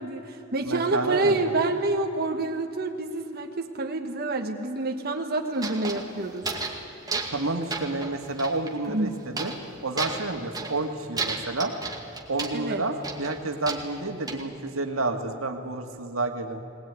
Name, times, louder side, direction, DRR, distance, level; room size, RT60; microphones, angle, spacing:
voice 1, 0.0-6.5 8.9-9.2 12.5-12.8, right 2 dB, 50° right, 3 dB, 1.3 m, -28 dB
voice 2, 0.6-1.6 7.3-9.5 9.8-11.7 12.3-16.6, right 2 dB, 85° right, 5 dB, 2.0 m, -30 dB
sound 1, 5.5-6.8 7.1-7.5 7.7-8.7 9.4-9.7 10.0-10.8 11.2-12.6 13.0-14.4, right 3 dB, 20° right, 2.1 m, -33 dB
20.0 x 19.5 x 9.5 m, 2.8 s
head